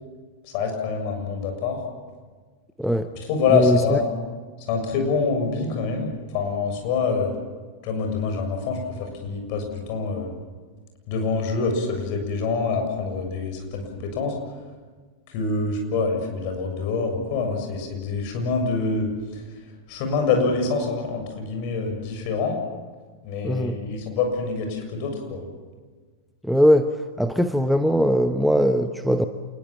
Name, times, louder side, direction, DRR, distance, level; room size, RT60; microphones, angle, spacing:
voice 1, 0.4-1.8 3.2-4.1 4.7-7.3 7.8-10.3 11.1-14.4 15.3-19.4 19.9-22.6 23.2-25.5, left 4 dB, 45° left, 4 dB, 7.1 m, -25 dB
voice 2, 3.5-4.0 23.4-23.8 26.4-26.9 27.2-29.2, equal, ahead, 8 dB, 1.0 m, -20 dB
27.5 x 21.0 x 7.4 m, 1.4 s
figure-of-eight pair, 90°, 0 cm